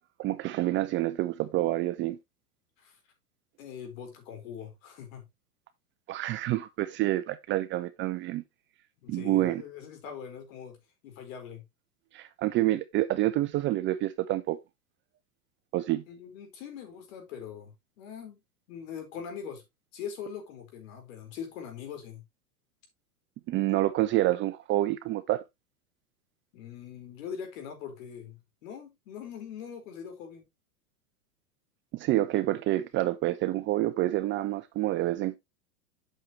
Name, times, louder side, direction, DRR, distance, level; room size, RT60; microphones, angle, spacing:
voice 1, 0.2-2.2 6.1-8.4 9.1-9.6 12.1-14.6 15.7-16.0 23.5-25.4 31.9-35.4, right 16 dB, 25° right, 0.5 m, -28 dB
voice 2, 3.6-5.2 9.0-10.8 11.0-11.6 16.1-18.4 18.7-19.6 19.9-22.2 26.5-30.4, left 7 dB, 60° left, 4.4 m, -42 dB
8.8 x 6.4 x 3.0 m
hypercardioid pair, 115°, 44 cm